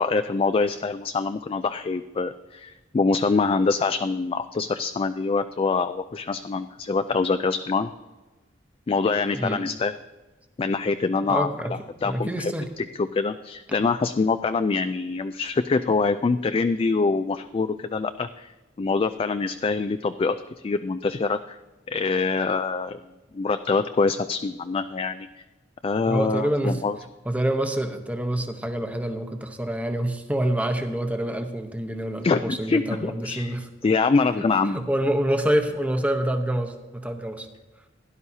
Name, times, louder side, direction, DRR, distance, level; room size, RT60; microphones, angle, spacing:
voice 1, 0.0-7.9 8.9-9.9 10.6-11.5 12.0-12.5 13.0-18.5 18.8-21.6 21.9-23.0 23.3-25.3 25.8-27.0 32.2-33.6 33.8-34.8, left 4 dB, 30° left, 10 dB, 0.3 m, -24 dB
voice 2, 11.3-11.7 12.0-12.7 26.1-26.8 27.2-33.7 34.6-37.5, right 1 dB, 10° right, 6 dB, 0.9 m, -26 dB
17.0 x 11.0 x 2.8 m, 1.2 s
head